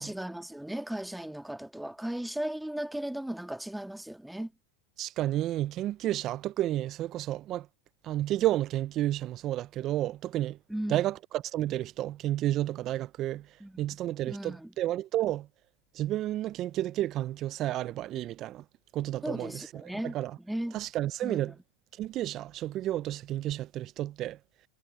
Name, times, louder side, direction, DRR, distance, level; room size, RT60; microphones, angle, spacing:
voice 1, 0.0-4.5 10.7-11.0 13.6-14.0 14.3-14.7 19.2-20.8 21.2-21.6, right 1 dB, 5° right, 1.7 m, -36 dB
voice 2, 5.0-7.7 8.0-10.6 10.9-13.5 13.8-15.5 15.9-18.6 18.9-19.6 20.0-20.3 20.7-21.5 22.0-24.4, right 14 dB, 40° right, 0.5 m, -31 dB
hypercardioid pair, 110°, 0 cm